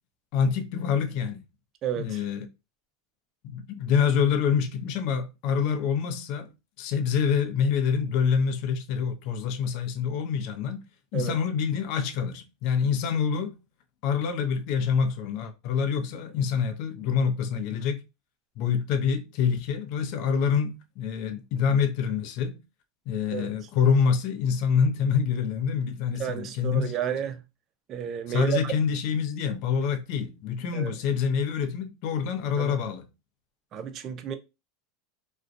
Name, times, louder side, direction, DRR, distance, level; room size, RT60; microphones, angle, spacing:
voice 1, 0.3-1.4 2.0-2.5 3.4-6.5 6.8-10.8 11.1-13.5 14.0-18.0 18.6-22.6 23.1-26.9 28.3-33.0, left 6 dB, 55° left, 0.5 m, -26 dB
voice 2, 1.8-2.2 11.1-11.4 23.3-23.6 26.2-27.4 27.9-28.7 30.7-30.9 32.6-32.8 33.7-34.4, right 9 dB, 40° right, 0.4 m, -31 dB
2.4 x 2.1 x 2.5 m
hypercardioid pair, 105°, 0 cm